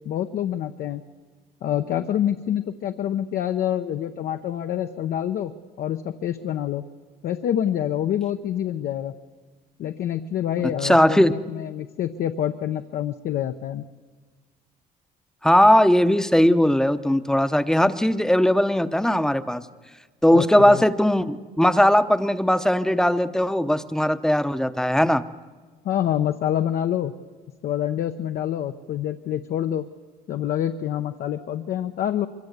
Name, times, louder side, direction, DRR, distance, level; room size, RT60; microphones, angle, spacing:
voice 1, 0.0-1.0 1.6-5.5 5.8-6.8 7.2-9.1 9.8-13.8 20.3-20.8 25.8-27.1 27.6-29.8 30.3-32.3, left 10 dB, 65° left, 6 dB, 0.9 m, -26 dB
voice 2, 10.8-11.3 15.4-19.6 20.2-25.2, left 1 dB, 5° left, 11 dB, 0.8 m, -19 dB
24.0 x 23.0 x 8.2 m, 1.4 s
cardioid pair, 110°, 17 cm